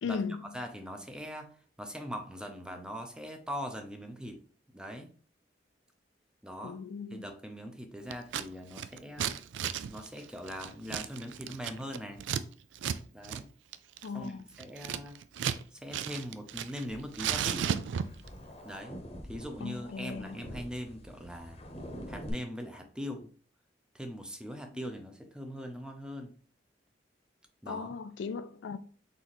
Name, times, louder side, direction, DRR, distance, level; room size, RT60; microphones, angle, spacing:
voice 1, 0.0-0.4 6.6-7.3 14.0-14.4 19.6-20.4 27.7-28.8, left 5 dB, 80° left, 0.4 m, -37 dB
voice 2, 0.5-4.4 4.7-5.1 6.4-6.8 7.1-9.4 9.9-12.2 13.1-13.5 14.1-15.2 15.7-17.7 18.6-19.0 19.3-21.6 22.1-23.3 23.9-26.3 27.6-27.9, equal, 5° right, 0.6 m, -41 dB
Scissors, 8.1-8.5 8.7-12.4 12.8-13.0 13.2-13.4 13.7-15.6 15.9-16.8 17.1-18.3, right 8 dB, 90° right, 0.3 m, -34 dB
sound 1, 16.9-22.3, equal, 35° left, 0.9 m, -46 dB
4.1 x 4.0 x 3.0 m
head